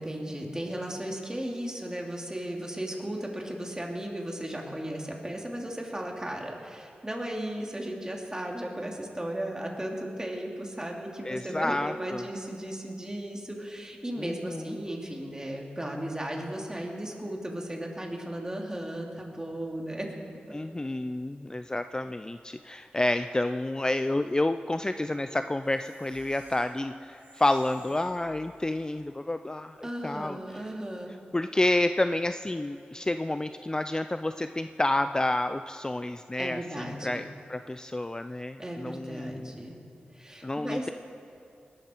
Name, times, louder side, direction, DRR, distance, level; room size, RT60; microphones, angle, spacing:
voice 1, 0.0-20.1 22.9-23.0 29.8-31.1 36.4-37.2 38.6-39.8 40.1-40.9, right 1 dB, 20° right, 0 dB, 2.8 m, -36 dB
voice 2, 11.2-12.2 14.2-14.8 20.5-30.4 31.3-39.5 40.4-40.9, left 1 dB, 20° left, 10 dB, 0.4 m, -29 dB
sound 1, 25.6-28.9, right 1 dB, 65° right, 3.6 m, -56 dB
20.5 x 12.0 x 4.5 m, 2.5 s
cardioid pair, 45°, 3 cm